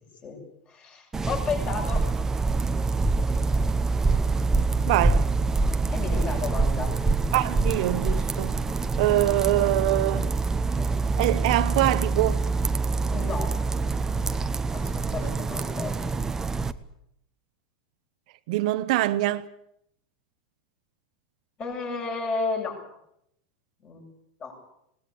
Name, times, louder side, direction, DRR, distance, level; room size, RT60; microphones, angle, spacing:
voice 1, 0.7-2.1 5.9-7.0 13.1-13.6 14.7-16.0 21.6-22.8 23.8-24.1 24.4-24.6, left 4 dB, 30° left, 7.8 m, -32 dB
sound 1, 1.1-16.7, right 3 dB, 10° right, 0.9 m, -25 dB
voice 2, 4.9-5.3 7.3-8.5 9.0-10.3 11.2-12.4 15.2-15.3 18.5-19.4, right 16 dB, 60° right, 1.0 m, -24 dB
20.5 x 18.5 x 8.5 m
supercardioid pair, 140°, 4 cm